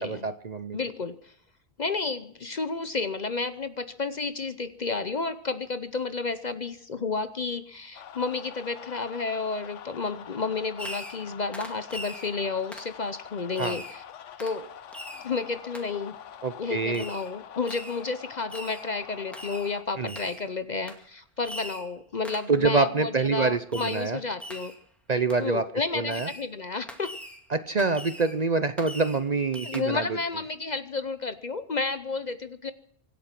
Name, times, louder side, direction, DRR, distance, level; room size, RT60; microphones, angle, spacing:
voice 1, 0.0-0.8 13.6-13.8 16.4-17.0 20.0-20.1 22.5-24.2 25.1-25.6 25.9-26.3 27.5-30.2, right 4 dB, 40° right, 11 dB, 0.7 m, -26 dB
voice 2, 0.7-1.3 1.8-14.0 14.4-14.7 15.2-16.1 16.6-24.7 25.4-27.1 29.6-32.7, left 4 dB, 45° left, 12 dB, 0.7 m, -31 dB
sound 1, 7.9-19.8, left 9 dB, 90° left, 1.1 m, -45 dB
Fireworks, 10.8-11.3 11.5-12.3 12.7-12.9 13.6-14.0 14.4-14.6 14.9-15.3 15.7-15.9 16.9-17.3 17.7-18.0 18.5-18.9 19.3-19.7 20.1-20.4 20.9-21.0 21.4-21.9 22.2-22.5 23.7-24.1 24.4-24.8 25.3-25.4 26.1-26.5 26.9-27.4 27.8-28.4 28.8-29.2 29.5-29.8, equal, ahead, 2.1 m, -41 dB
25.0 x 8.5 x 5.9 m, 0.64 s
omnidirectional pair, 1.2 m